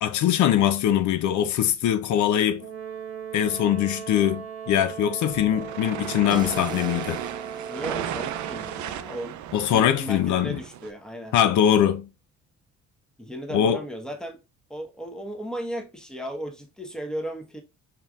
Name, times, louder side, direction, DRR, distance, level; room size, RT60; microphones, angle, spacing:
voice 1, 0.0-2.7 3.3-7.2 9.5-10.6 11.3-12.1 13.5-13.8, left 10 dB, 75° left, 0.5 m, -22 dB
Brass instrument, 2.6-9.0, right 7 dB, 55° right, 1.1 m, -38 dB
sound 1, 5.3-10.9, right 11 dB, 75° right, 0.4 m, -35 dB
sound 2, 6.3-9.4, right 2 dB, 15° right, 0.4 m, -41 dB
voice 2, 7.7-9.4 9.7-11.3 13.2-14.4 14.7-17.6, right 1 dB, ahead, 1.0 m, -35 dB
4.5 x 3.7 x 2.2 m
cardioid pair, 90°, 30 cm